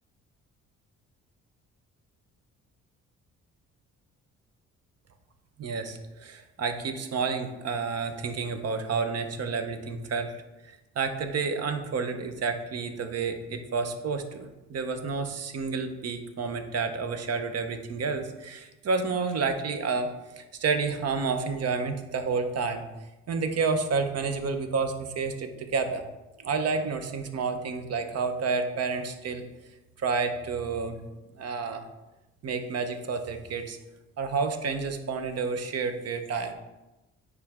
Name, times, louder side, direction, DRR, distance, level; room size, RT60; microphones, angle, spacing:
voice 1, 5.6-10.3 11.0-22.8 23.3-26.0 26.4-29.4 30.0-31.0 31.4-31.8 32.4-33.8 34.2-36.5, right 4 dB, 55° right, 7 dB, 0.8 m, -30 dB
9.6 x 3.3 x 3.6 m, 1.0 s
cardioid pair, 90°, 30 cm